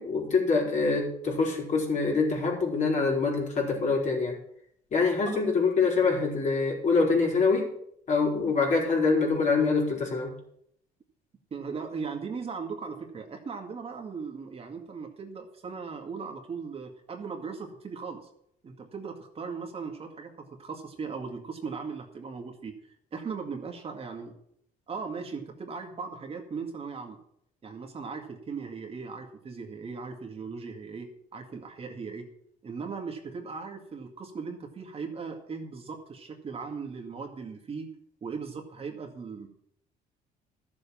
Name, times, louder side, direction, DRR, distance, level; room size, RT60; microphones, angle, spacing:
voice 1, 0.0-4.4 4.9-7.7 8.1-10.3, left 4 dB, 45° left, -1 dB, 4.6 m, -25 dB
voice 2, 11.5-18.2 18.6-22.7 23.1-24.3 24.9-27.2 27.6-32.3 32.6-37.9 38.2-39.5, right 5 dB, 35° right, 3 dB, 2.1 m, -38 dB
13.0 x 7.5 x 7.2 m, 0.71 s
cardioid pair, 110°, 17 cm